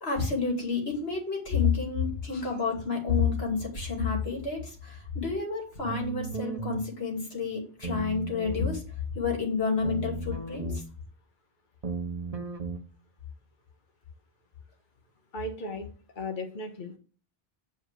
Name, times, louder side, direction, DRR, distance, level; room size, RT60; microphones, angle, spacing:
voice 1, 0.0-8.8 9.2-10.7, left 5 dB, 85° left, 0 dB, 2.8 m, -29 dB
sound 1, 5.9-6.8 7.8-8.8 9.8-10.8 11.8-12.8, right 4 dB, 35° right, 1.2 m, -35 dB
voice 2, 15.3-17.0, left 2 dB, 50° left, 3 dB, 1.3 m, -36 dB
8.7 x 4.8 x 6.1 m, 0.39 s
omnidirectional pair, 1.0 m